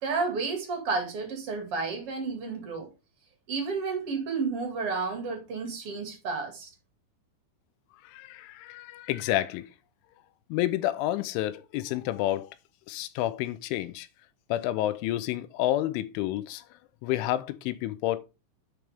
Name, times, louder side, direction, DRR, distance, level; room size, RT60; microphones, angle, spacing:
voice 1, 0.0-2.9 3.5-6.7, right 4 dB, 45° right, 2.1 m, -31 dB
voice 2, 8.1-9.7 10.5-12.5 12.9-14.1 14.5-16.6 17.0-18.2, left 14 dB, 80° left, 3.0 m, -29 dB
11.0 x 6.5 x 3.5 m
omnidirectional pair, 5.7 m